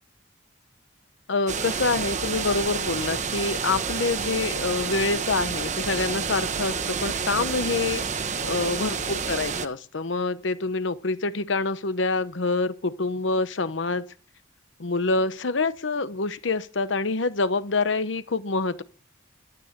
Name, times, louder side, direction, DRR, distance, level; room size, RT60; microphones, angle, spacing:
voice 1, 1.3-8.0 8.4-14.0 14.8-18.8, left 3 dB, 70° left, 0.9 m, -26 dB
sound 1, 1.5-9.7, right 5 dB, 40° right, 0.9 m, -29 dB
12.5 x 9.5 x 6.6 m
head